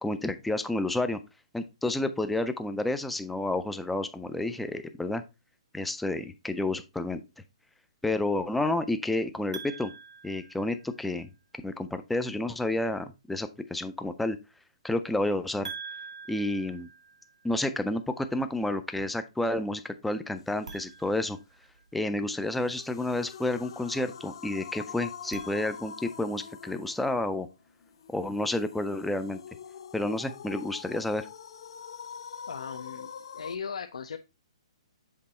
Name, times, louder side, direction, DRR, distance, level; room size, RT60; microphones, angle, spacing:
voice 1, 0.0-1.2 1.5-5.2 5.7-7.2 8.0-9.9 10.2-11.3 11.6-14.4 14.8-15.7 16.3-16.9 17.4-21.4 21.9-27.5 28.1-29.4 29.9-31.3, left 2 dB, ahead, 9 dB, 0.3 m, -30 dB
sound 1, 9.5-11.2 15.6-17.7 20.6-22.2 25.1-26.3, right 5 dB, 85° right, 1.8 m, -46 dB
sound 2, 22.5-33.6, left 7 dB, 50° left, 0.9 m, -45 dB
voice 2, 32.5-34.2, left 6 dB, 80° left, 5 dB, 0.7 m, -38 dB
7.4 x 3.8 x 4.2 m, 0.26 s
hypercardioid pair, 175°, 3 cm